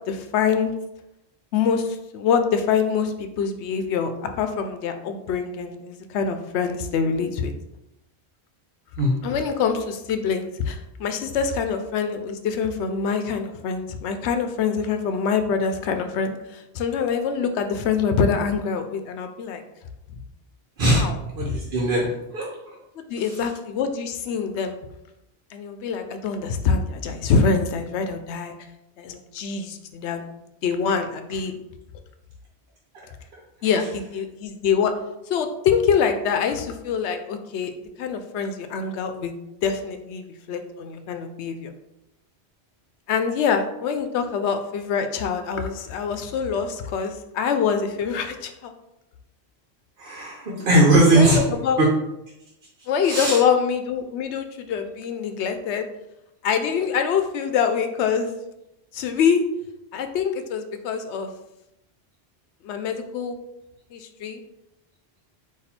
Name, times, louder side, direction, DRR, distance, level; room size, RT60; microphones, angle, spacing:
voice 1, 0.1-0.7 1.5-4.1 4.4-7.5 9.2-19.6 20.9-21.6 23.1-24.8 25.5-28.5 29.0-30.2 30.6-31.6 33.6-34.9 35.3-37.7 38.0-41.7 43.1-48.7 51.2-51.8 52.9-55.9 56.4-58.3 58.9-59.4 59.9-61.3 62.6-63.4 63.9-64.4, left 6 dB, 90° left, 7 dB, 0.9 m, -25 dB
voice 2, 21.4-22.5 23.2-23.5 33.3-34.0 50.0-51.9 53.0-53.4, right 1 dB, 60° right, -2 dB, 1.0 m, -20 dB
4.1 x 2.6 x 4.1 m, 0.87 s
omnidirectional pair, 1.1 m